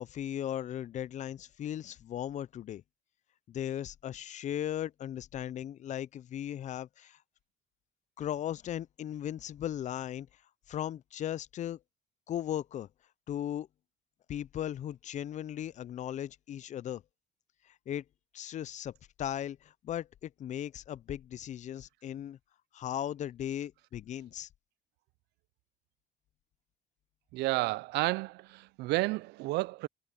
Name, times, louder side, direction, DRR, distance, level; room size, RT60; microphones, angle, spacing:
voice 1, 0.0-2.8 3.5-7.2 8.2-10.3 10.7-11.8 12.3-12.9 13.3-13.7 14.3-17.0 17.7-18.0 18.3-18.9 19.2-22.4 22.7-24.5, left 11 dB, 45° left, 0.4 m, -37 dB
voice 2, 27.3-29.9, right 20 dB, 85° right, 0.4 m, -31 dB
cardioid pair, 110°, 17 cm